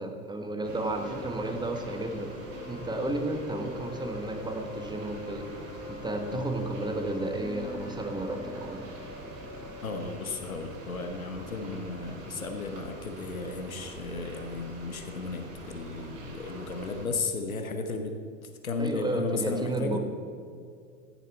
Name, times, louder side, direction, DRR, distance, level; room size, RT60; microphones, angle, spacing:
voice 1, 0.0-5.5 5.9-9.0 18.8-20.0, right 2 dB, 10° right, 5 dB, 1.3 m, -33 dB
sound 1, 0.6-12.3, left 3 dB, 40° left, 1.5 m, -45 dB
sound 2, 0.6-17.1, right 1 dB, 55° right, 3.3 m, -44 dB
voice 2, 9.8-18.1 18.6-20.0, left 3 dB, 85° left, 5 dB, 1.0 m, -34 dB
15.5 x 7.2 x 4.5 m, 2.3 s
figure-of-eight pair, 80°, 41 cm